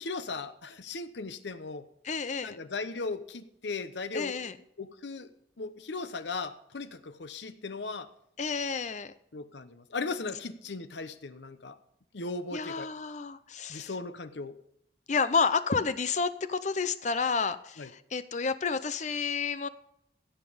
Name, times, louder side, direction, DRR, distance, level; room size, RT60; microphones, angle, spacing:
voice 1, 0.0-1.9 2.4-4.4 4.8-5.3 5.6-8.1 9.3-11.8 12.1-12.9 13.7-14.6 17.8-17.9, left 3 dB, 80° left, 12 dB, 0.8 m, -37 dB
voice 2, 2.0-2.6 4.1-4.6 8.4-9.1 12.5-13.9 15.1-19.7, left 5 dB, 40° left, 13 dB, 0.6 m, -30 dB
16.0 x 7.6 x 5.1 m, 0.75 s
head